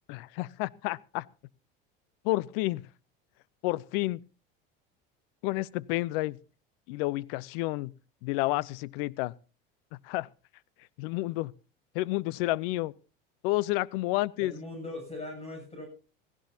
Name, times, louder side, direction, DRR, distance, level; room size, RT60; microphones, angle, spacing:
voice 1, 0.1-1.3 2.2-2.8 3.6-4.2 5.4-6.4 6.9-7.9 8.2-9.3 10.0-10.3 11.0-11.5 11.9-12.9 13.4-14.5, left 19 dB, 70° left, 0.7 m, -30 dB
voice 2, 14.4-15.9, left 2 dB, 20° left, 7.7 m, -40 dB
16.5 x 15.5 x 2.8 m
hypercardioid pair, 85°, 29 cm